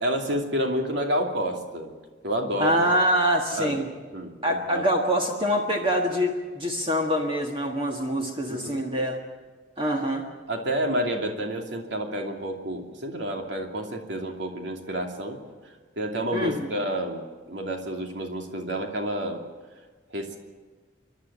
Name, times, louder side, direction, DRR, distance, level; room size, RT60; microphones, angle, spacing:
voice 1, 0.0-1.9 2.2-2.8 3.5-3.8 4.1-4.9 8.5-8.9 10.5-17.2 17.5-19.4 20.1-20.4, equal, 70° right, 2 dB, 2.8 m, -29 dB
voice 2, 2.6-3.9 4.4-9.2 9.8-10.3 16.3-16.7, equal, 30° right, 1 dB, 1.6 m, -25 dB
29.0 x 11.5 x 9.0 m, 1.4 s
head